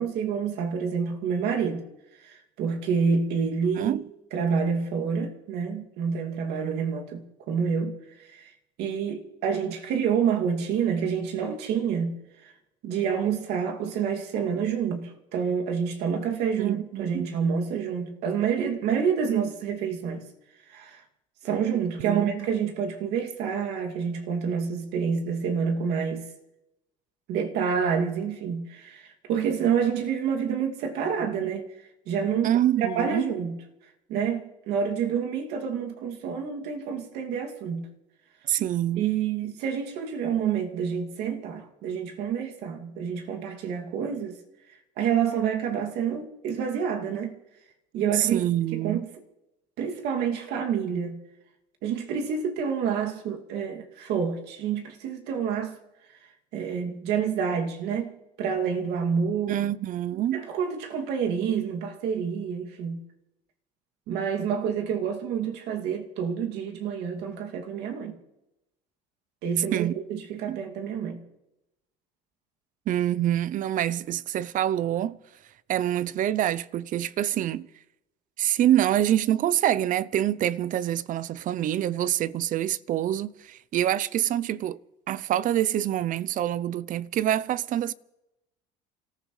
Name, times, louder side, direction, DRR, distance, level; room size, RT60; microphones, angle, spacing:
voice 1, 0.0-1.9 2.2-4.0 4.3-8.0 8.2-8.5 8.8-12.2 12.4-12.5 12.8-20.2 20.7-21.0 21.4-26.3 27.3-31.7 32.1-33.6 34.1-37.9 39.0-44.4 45.0-47.4 47.9-48.4 48.7-49.1 49.8-51.2 51.8-55.8 56.5-58.1 58.4-59.6 60.3-63.0 64.1-68.2 69.4-71.2, right 7 dB, 70° right, 2.5 m, -28 dB
voice 2, 3.8-4.1 16.6-17.3 22.0-22.3 32.4-33.3 38.4-39.1 48.1-49.0 59.5-60.5 69.7-69.9 70.5-70.6 72.9-75.2 75.7-77.7 78.4-84.8 85.1-87.9, right 12 dB, 50° right, 0.6 m, -26 dB
28.5 x 14.5 x 3.3 m
supercardioid pair, 105°, 18 cm